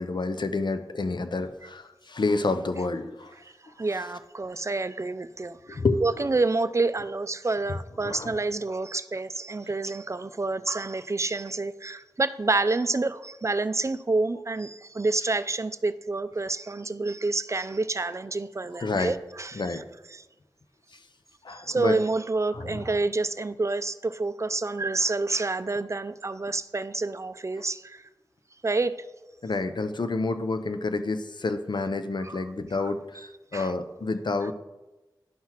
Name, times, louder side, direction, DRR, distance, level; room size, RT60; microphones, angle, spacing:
voice 1, 0.0-3.3 5.7-6.3 8.0-8.4 18.8-19.1 19.5-19.8 21.4-22.0 22.5-22.8 29.4-34.5, left 3 dB, 65° left, 9 dB, 0.6 m, -29 dB
voice 2, 3.8-19.8 20.1-20.2 21.5-28.0 28.6-28.9 32.2-32.4 33.5-33.7, right 3 dB, 35° right, 13 dB, 0.4 m, -28 dB
11.0 x 5.6 x 3.0 m, 1.1 s
wide cardioid pair, 45°, 8 cm